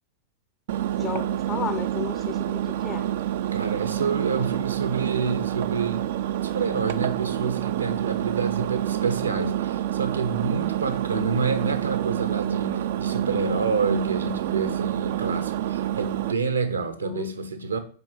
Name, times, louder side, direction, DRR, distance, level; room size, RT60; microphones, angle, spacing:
Engine, 0.7-16.3, right 12 dB, 55° right, 0.4 m, -27 dB
voice 1, 1.0-2.6 2.8-3.0 17.0-17.3, left 8 dB, 30° left, 0.7 m, -33 dB
voice 2, 3.5-6.1 6.4-17.8, right 4 dB, 75° right, 0.9 m, -28 dB
5.8 x 4.5 x 5.6 m
figure-of-eight pair, 90°, 0 cm